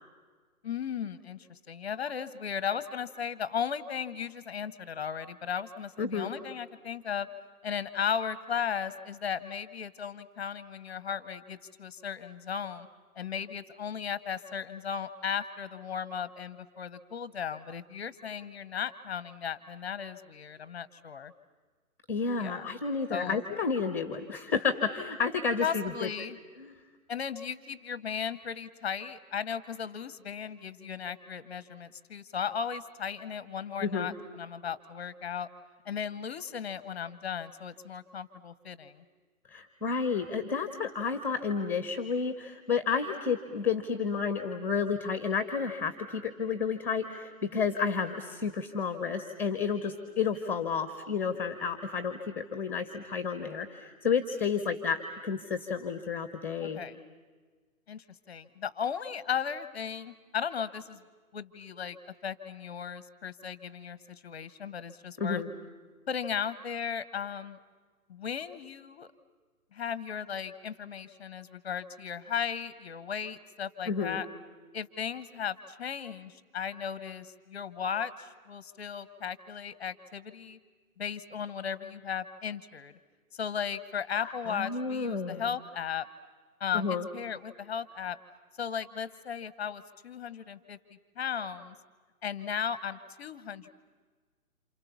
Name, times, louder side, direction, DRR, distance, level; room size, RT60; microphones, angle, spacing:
voice 1, 0.6-7.3 7.6-12.9 13.2-21.3 22.4-22.7 23.1-23.4 25.6-26.4 27.1-35.5 35.8-39.0 47.5-47.7 56.6-57.0 57.9-61.0 61.3-62.0 62.2-65.4 66.1-67.6 68.1-69.1 69.7-74.3 74.7-80.6 81.0-82.9 83.3-86.1 86.6-88.2 88.6-90.8 91.2-91.7 92.2-93.7, left 7 dB, 25° left, 15 dB, 0.9 m, -36 dB
voice 2, 6.0-6.3 22.1-26.1 26.6-26.7 33.8-34.1 39.5-56.8 65.2-65.5 73.9-74.2 84.2-85.4 86.7-87.1, left 5 dB, 5° left, 9 dB, 1.1 m, -31 dB
29.0 x 28.0 x 7.2 m, 1.4 s
figure-of-eight pair, 135°, 43 cm